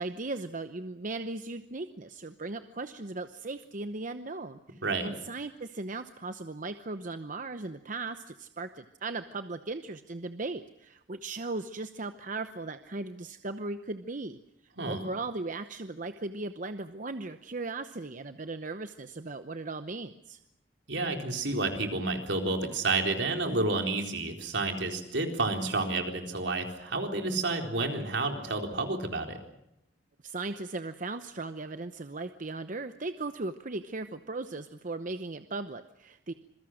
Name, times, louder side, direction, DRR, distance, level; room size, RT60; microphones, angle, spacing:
voice 1, 0.0-14.4 14.8-20.4 30.2-36.3, right 3 dB, 45° right, 9 dB, 0.9 m, -37 dB
voice 2, 4.8-5.1 14.8-15.0 20.9-29.4, right 3 dB, 75° right, 4 dB, 4.0 m, -30 dB
27.0 x 22.5 x 6.4 m, 0.80 s
head